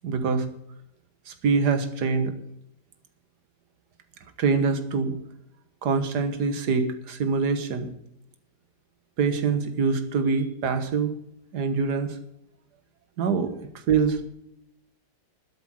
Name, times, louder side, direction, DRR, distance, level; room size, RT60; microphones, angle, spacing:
voice 1, 0.0-0.5 1.3-2.3 4.4-5.1 5.8-7.9 9.2-11.1 11.5-12.2 13.2-13.5 13.9-14.2, right 5 dB, 65° right, 8 dB, 1.8 m, -24 dB
12.5 x 8.0 x 7.6 m, 0.79 s
omnidirectional pair, 2.0 m